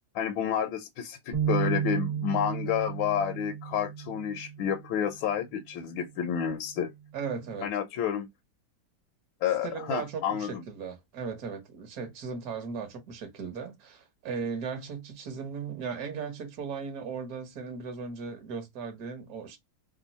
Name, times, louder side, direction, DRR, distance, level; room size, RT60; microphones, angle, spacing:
voice 1, 0.1-6.9 7.6-8.3 9.4-10.6, left 9 dB, 75° left, 1.3 m, -30 dB
sound 1, 1.3-4.8, right 9 dB, 35° right, 0.9 m, -32 dB
voice 2, 7.1-7.7 9.6-19.6, right 5 dB, 50° right, 1.3 m, -37 dB
3.5 x 2.2 x 4.0 m
omnidirectional pair, 2.3 m